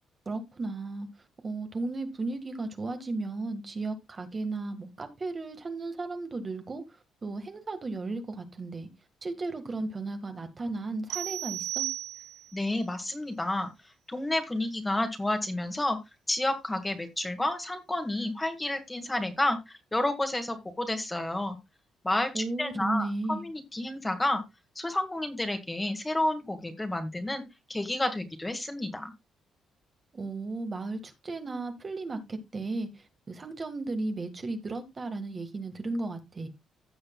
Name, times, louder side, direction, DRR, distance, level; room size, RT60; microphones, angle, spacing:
voice 1, 0.3-1.1 1.4-6.8 7.2-8.9 9.2-11.9 22.3-23.4 30.1-32.9 33.3-36.5, right 3 dB, 35° right, 1.7 m, -34 dB
sound 1, 11.1-12.6, right 14 dB, 85° right, 0.8 m, -34 dB
voice 2, 12.5-13.7 14.1-16.0 16.3-21.6 22.0-24.4 24.8-27.4 27.7-29.1, left 1 dB, 15° left, 1.9 m, -30 dB
15.5 x 6.6 x 2.3 m
cardioid pair, 90°, 0 cm